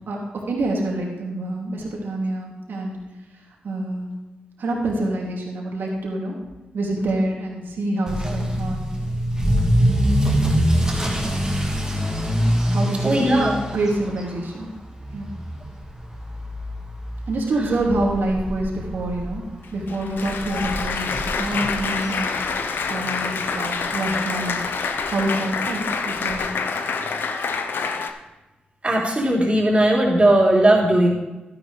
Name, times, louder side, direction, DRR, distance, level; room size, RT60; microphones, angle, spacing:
voice 1, 0.5-3.0 3.6-4.1 4.6-6.4 6.7-8.9 10.2-10.4 12.7-14.7 15.1-15.3 17.3-19.4 19.7-22.4 22.6-24.7 25.1-26.4, right 2 dB, 75° right, -2 dB, 2.7 m, -26 dB
Motor vehicle (road) / Accelerating revving vroom, 8.1-22.9 23.2-23.6 24.1-24.2 24.5-24.6 24.9-25.0 26.3-26.4, equal, 15° right, 2.5 m, -25 dB
voice 2, 13.0-13.5 28.8-31.1, right 1 dB, 35° right, -2 dB, 3.4 m, -17 dB
Applause, 19.6-28.1, left 5 dB, 75° left, 0.9 m, -27 dB
12.0 x 11.0 x 3.4 m, 1.1 s
supercardioid pair, 45°, 4 cm